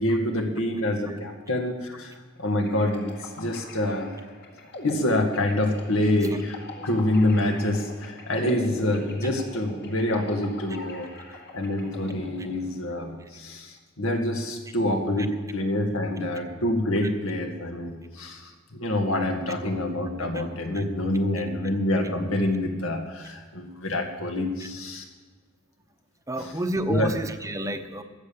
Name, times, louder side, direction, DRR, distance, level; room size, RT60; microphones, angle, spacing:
voice 1, 0.0-2.1 2.4-3.1 3.4-4.1 4.8-25.0 26.9-27.1, left 1 dB, 80° left, 3 dB, 2.0 m, -26 dB
sound 1, 2.6-13.1, left 2 dB, 55° left, 2.3 m, -41 dB
voice 2, 26.3-28.0, right 1 dB, 15° right, 7 dB, 0.9 m, -31 dB
14.5 x 8.6 x 7.2 m, 1.4 s
head